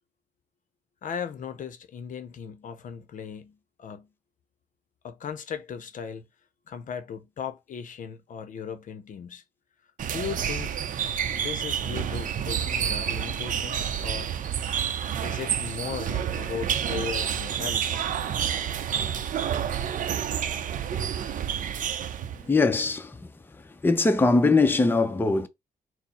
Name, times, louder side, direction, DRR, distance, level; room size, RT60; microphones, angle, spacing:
voice 1, 1.0-4.1 5.0-6.2 6.7-9.4 10.1-10.7 11.3-14.3 15.2-18.0 20.1-20.3, left 7 dB, 60° left, 0.6 m, -37 dB
sound 1, 10.0-22.5, right 8 dB, 60° right, 0.5 m, -29 dB
voice 2, 22.4-23.2 23.8-25.5, left 3 dB, 15° left, 0.6 m, -21 dB
4.3 x 2.0 x 4.2 m
cardioid pair, 85°, 15 cm